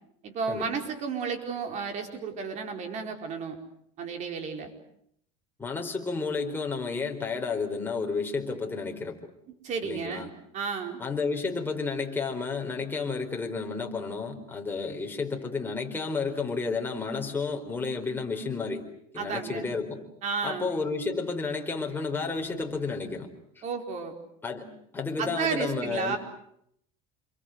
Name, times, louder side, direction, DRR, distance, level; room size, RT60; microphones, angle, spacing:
voice 1, 0.2-3.6 4.0-4.7 9.6-11.0 19.2-19.7 20.2-20.7 23.6-24.2 25.2-26.2, right 5 dB, 45° right, 5 dB, 4.6 m, -32 dB
voice 2, 5.6-9.2 9.8-10.3 11.0-18.9 19.1-20.0 20.4-23.3 24.4-24.7 24.9-26.2, left 4 dB, 15° left, 2 dB, 4.4 m, -31 dB
28.0 x 23.0 x 7.9 m, 0.73 s
supercardioid pair, 125°, 16 cm